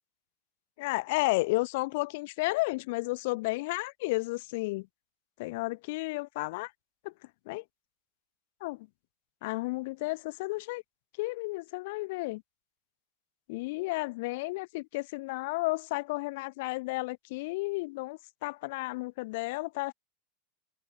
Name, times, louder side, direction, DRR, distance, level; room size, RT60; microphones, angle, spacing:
voice 1, 0.8-4.9 5.4-6.7 7.0-7.1 7.5-7.6 8.6-8.9 9.4-10.8 11.2-12.4 13.5-19.9, left 23 dB, 50° left, 0.7 m, -32 dB
supercardioid pair, 180°, 0 cm